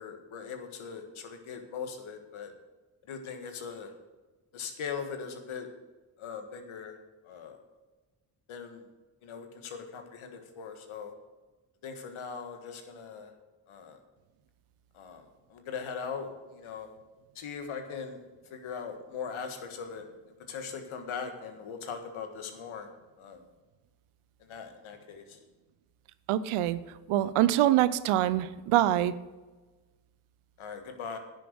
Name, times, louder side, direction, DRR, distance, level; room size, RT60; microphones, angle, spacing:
voice 1, 0.0-2.5 3.0-3.9 4.5-5.7 6.2-7.0 7.2-7.6 8.5-8.9 9.2-11.1 11.8-13.3 13.7-14.0 14.9-16.9 17.4-18.2 18.5-20.1 20.5-22.9 23.2-23.4 24.4-25.4 30.6-31.2, left 6 dB, 70° left, 6 dB, 1.7 m, -40 dB
voice 2, 26.3-26.8 27.1-29.1, right 13 dB, 80° right, 16 dB, 0.7 m, -24 dB
10.0 x 6.8 x 7.8 m, 1.2 s
hypercardioid pair, 40°, 50 cm